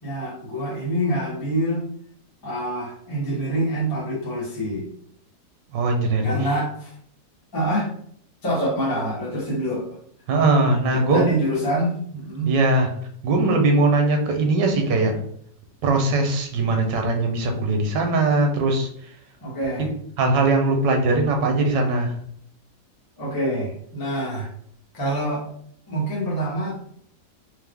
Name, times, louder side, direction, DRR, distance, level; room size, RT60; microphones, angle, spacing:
voice 1, 0.0-1.8 2.4-4.9 6.2-7.0 7.5-7.9 8.4-9.9 10.9-12.5 19.4-19.9 23.2-24.5 24.9-25.4 25.9-26.7, right 1 dB, 15° left, -4 dB, 0.9 m, -26 dB
voice 2, 5.7-6.3 10.3-11.3 12.5-12.9 13.2-15.2 15.8-18.9 20.2-22.1, right 2 dB, 80° right, 4 dB, 1.4 m, -20 dB
3.7 x 2.9 x 3.4 m, 0.65 s
omnidirectional pair, 1.9 m